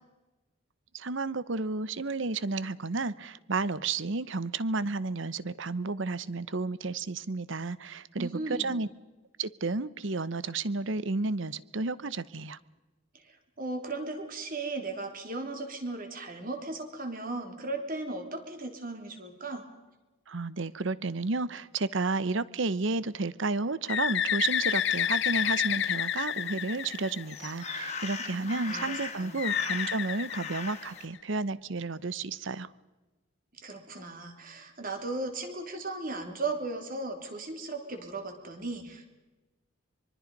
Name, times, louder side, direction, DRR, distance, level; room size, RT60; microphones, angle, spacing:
voice 1, 0.9-8.9 9.4-12.6 20.3-32.7, right 3 dB, 60° right, 18 dB, 0.8 m, -32 dB
voice 2, 8.2-8.8 13.1-19.6 28.2-29.4 33.5-39.1, right 2 dB, 40° right, 5 dB, 3.3 m, -37 dB
Bird, 23.9-27.6 29.4-31.2, left 9 dB, 55° left, 0.6 m, -29 dB
sound 1, 24.4-31.0, left 5 dB, 30° left, 2.2 m, -41 dB
25.0 x 23.5 x 5.4 m, 1.1 s
head